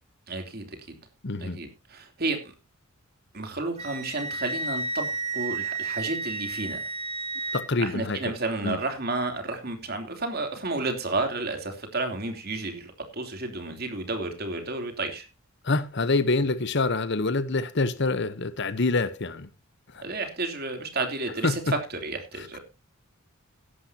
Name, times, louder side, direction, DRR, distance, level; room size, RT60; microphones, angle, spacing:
voice 1, 0.3-1.0 1.4-2.5 3.3-5.1 5.3-6.8 7.4-15.3 20.0-22.6, right 2 dB, 45° right, 3.2 m, -31 dB
voice 2, 1.2-1.6 7.5-8.2 8.6-8.8 15.6-19.5 19.9-20.0 21.4-21.6, left 3 dB, 55° left, 1.0 m, -26 dB
Wind instrument woodwind instrument, 3.8-7.6, right 3 dB, 30° right, 4.4 m, -32 dB
16.0 x 11.5 x 2.9 m
head